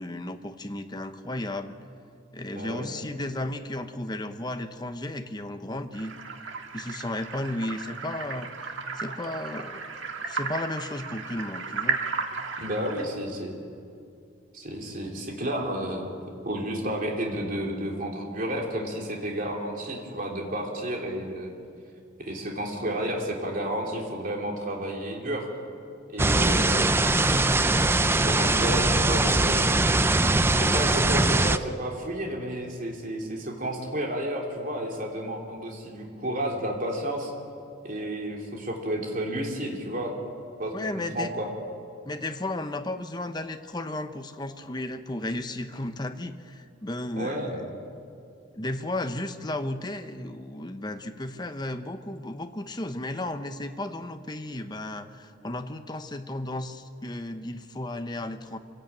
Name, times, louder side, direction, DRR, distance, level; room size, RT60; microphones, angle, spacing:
voice 1, 0.0-1.8 2.3-6.1 6.7-9.9 10.3-12.0 40.7-41.3 42.1-47.7 48.5-58.6, left 1 dB, 20° left, 7 dB, 0.9 m, -34 dB
voice 2, 2.5-2.9 12.6-13.6 14.5-16.2 16.4-21.5 22.2-25.5 26.1-26.9 28.2-29.8 30.6-37.3 37.8-40.1 40.6-41.5 47.2-47.6, right 1 dB, 40° right, 0 dB, 3.4 m, -31 dB
sound 1, 5.9-13.1, right 4 dB, 65° right, 1.8 m, -34 dB
sound 2, 26.2-31.6, right 2 dB, 10° right, 0.5 m, -22 dB
25.5 x 16.5 x 8.9 m, 2.4 s
head